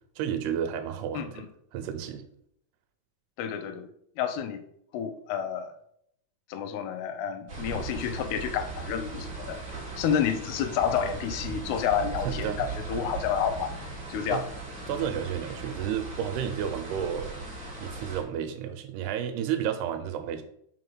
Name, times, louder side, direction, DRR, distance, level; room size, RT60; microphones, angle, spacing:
voice 1, 0.2-1.4 1.7-2.2 12.2-12.7 14.3-14.4 14.9-17.3 17.8-20.4, right 9 dB, 85° right, 2.8 m, -31 dB
voice 2, 1.1-1.5 3.4-3.9 4.2-4.6 4.9-5.7 6.5-9.6 10.0-13.8 14.1-14.4 14.9-15.0, left 8 dB, 80° left, 2.7 m, -30 dB
sound 1, 7.5-18.2, right 4 dB, 35° right, 1.1 m, -38 dB
5.7 x 4.9 x 6.1 m
omnidirectional pair, 4.6 m